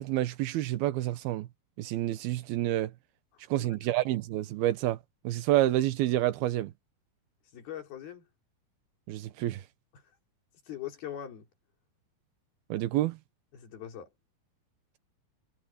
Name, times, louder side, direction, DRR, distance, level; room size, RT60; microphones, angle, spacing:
voice 1, 0.0-1.5 1.8-2.9 3.5-5.0 5.2-6.7 9.1-9.6 12.7-13.2, right 14 dB, 85° right, 3.0 m, -28 dB
voice 2, 3.6-3.9 7.5-8.2 10.7-11.5 13.5-14.1, left 10 dB, 85° left, 5.4 m, -41 dB
omnidirectional pair, 4.3 m